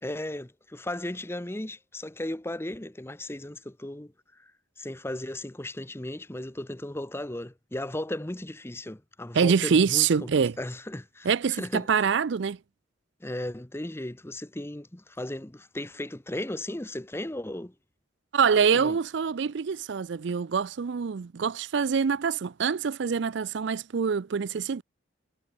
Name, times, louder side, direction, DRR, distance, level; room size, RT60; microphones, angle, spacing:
voice 1, 0.0-4.5 4.8-11.9 13.2-17.7 18.7-19.0, left 1 dB, 10° left, 0.8 m, -36 dB
voice 2, 9.3-10.6 11.2-12.6 18.3-24.8, right 6 dB, 60° right, 0.4 m, -25 dB
head